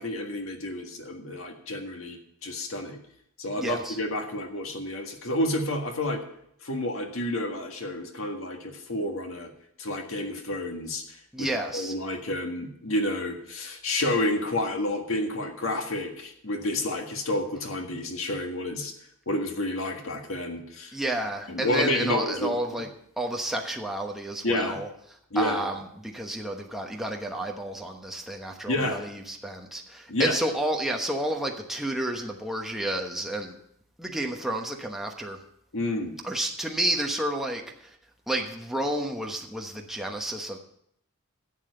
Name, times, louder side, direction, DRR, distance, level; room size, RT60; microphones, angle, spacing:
voice 1, 0.0-3.0 3.4-6.2 6.6-9.5 9.8-11.0 11.4-11.5 11.7-18.9 19.3-20.9 21.5-22.6 24.4-24.8 25.3-25.7 28.7-29.0 30.1-30.4 35.7-36.1, left 1 dB, 70° left, 4 dB, 1.7 m, -30 dB
voice 2, 3.6-4.0 11.3-11.9 20.9-22.9 23.2-24.9 25.3-33.6 34.0-35.4 36.2-38.0 38.3-40.6, right 1 dB, ahead, 1 dB, 1.1 m, -31 dB
11.5 x 7.3 x 6.8 m, 0.72 s
head